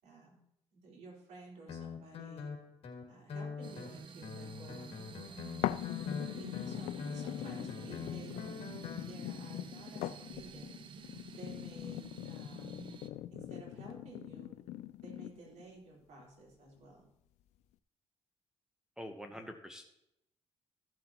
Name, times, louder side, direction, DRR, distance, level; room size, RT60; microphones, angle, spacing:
voice 1, 0.0-0.4 0.7-2.5 3.1-4.9 5.2-5.5 6.3-10.7 11.4-12.8 13.3-14.5 15.0-17.1 19.3-19.4, right 3 dB, 85° right, -3 dB, 4.0 m, -54 dB
Guitar, 1.7-9.1, left 5 dB, 60° left, 2.0 m, -44 dB
sound 1, 3.6-13.1, right 6 dB, 45° right, 0.7 m, -50 dB
Croquet Ball, 5.6-15.6 16.2-16.3, left 13 dB, 85° left, 0.4 m, -41 dB
voice 2, 19.0-19.8, equal, 5° right, 5 dB, 0.9 m, -45 dB
14.5 x 7.7 x 3.0 m, 0.80 s
cardioid pair, 105°, 11 cm